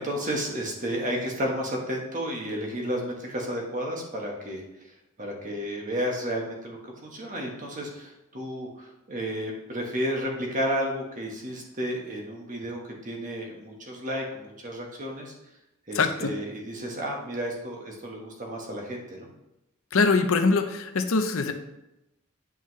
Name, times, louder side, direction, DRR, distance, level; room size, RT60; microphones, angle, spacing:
voice 1, 0.0-4.6 5.2-15.3 15.9-19.3, equal, 40° right, 0 dB, 1.4 m, -32 dB
voice 2, 15.9-16.3 19.9-21.5, left 4 dB, 75° left, 7 dB, 0.7 m, -23 dB
9.3 x 5.5 x 3.2 m, 0.93 s
head